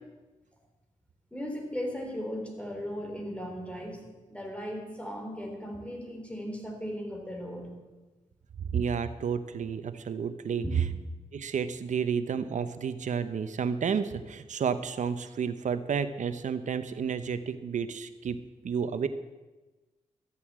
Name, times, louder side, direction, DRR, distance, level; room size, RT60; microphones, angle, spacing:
voice 1, 1.3-4.0 4.3-7.8 10.6-10.9, equal, 10° left, 2 dB, 3.7 m, -37 dB
voice 2, 8.6-10.8 11.3-18.4 18.6-19.1, right 7 dB, 70° right, 11 dB, 0.9 m, -31 dB
13.5 x 8.5 x 7.5 m, 1.2 s
cardioid pair, 70°, 13 cm